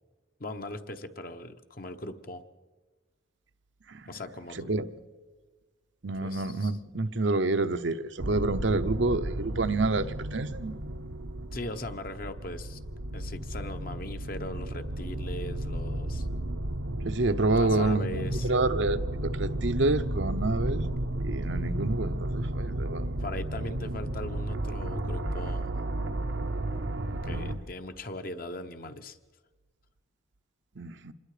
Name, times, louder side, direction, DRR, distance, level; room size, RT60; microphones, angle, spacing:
voice 1, 0.4-2.4 4.1-4.7 6.2-6.8 11.5-12.8 13.1-16.3 17.5-18.5 23.2-25.9 27.2-29.2, left 1 dB, 45° left, 1.0 m, -39 dB
voice 2, 6.0-10.7 17.0-20.9 21.2-23.1 27.3-27.6 30.8-31.1, right 2 dB, 70° right, 0.8 m, -28 dB
sound 1, 8.2-27.6, right 1 dB, 90° right, 1.2 m, -33 dB
26.5 x 20.5 x 5.0 m
head